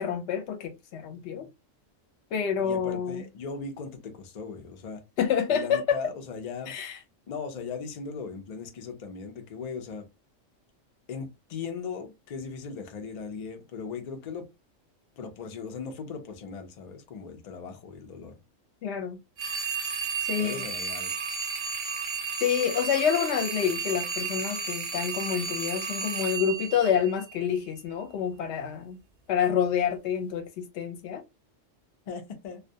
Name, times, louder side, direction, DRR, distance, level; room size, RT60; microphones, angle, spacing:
voice 1, 0.0-1.5 2.3-3.2 5.2-6.0 6.7-6.9 18.8-19.2 20.3-20.6 22.4-29.0 29.3-31.2, left 8 dB, 65° left, 0.8 m, -28 dB
voice 2, 2.6-5.0 5.5-6.7 7.3-10.1 11.1-14.5 15.2-18.4 20.4-21.1 32.1-32.6, left 5 dB, 90° left, 0.3 m, -38 dB
sound 1, 19.4-27.6, right 5 dB, 55° right, 0.6 m, -33 dB
2.2 x 2.1 x 2.6 m
omnidirectional pair, 1.3 m